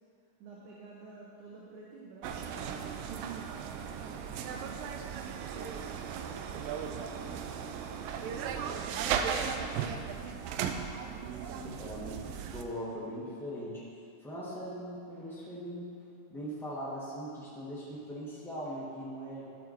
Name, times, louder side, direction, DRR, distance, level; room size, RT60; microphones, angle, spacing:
voice 1, 0.4-5.3 6.0-10.8, right 3 dB, 70° right, -4 dB, 2.3 m, -51 dB
sound 1, 2.2-12.6, right 7 dB, 90° right, 2.3 m, -36 dB
voice 2, 11.4-13.8 14.2-15.9 16.3-19.4, equal, ahead, -9 dB, 0.8 m, -40 dB
11.5 x 6.5 x 4.5 m, 2.6 s
omnidirectional pair, 3.9 m